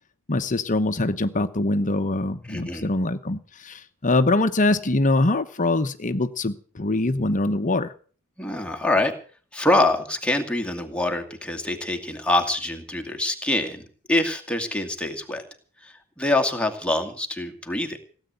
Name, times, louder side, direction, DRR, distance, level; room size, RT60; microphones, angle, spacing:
voice 1, 0.3-7.9, left 2 dB, 35° left, 10 dB, 1.0 m, -23 dB
voice 2, 2.5-2.9 8.4-9.1 9.5-15.4 15.8-18.0, left 2 dB, 5° left, 2 dB, 2.3 m, -25 dB
17.0 x 9.0 x 8.3 m, 0.43 s
head